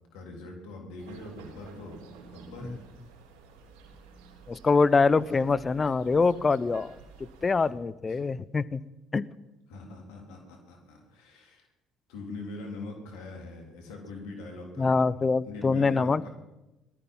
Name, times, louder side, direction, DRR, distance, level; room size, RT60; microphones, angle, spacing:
voice 1, 0.1-2.0 2.3-2.8 8.1-8.2 9.7-11.7 12.1-15.2 15.4-16.3, left 2 dB, 75° left, 1 dB, 3.6 m, -42 dB
sound 1, 1.0-7.7, right 4 dB, 75° right, 3.6 m, -51 dB
voice 2, 4.5-6.9 7.4-8.8 9.1-9.3 14.8-16.3, left 4 dB, 30° left, 17 dB, 0.7 m, -24 dB
18.5 x 13.5 x 5.6 m, 1.0 s
hypercardioid pair, 55°, 0 cm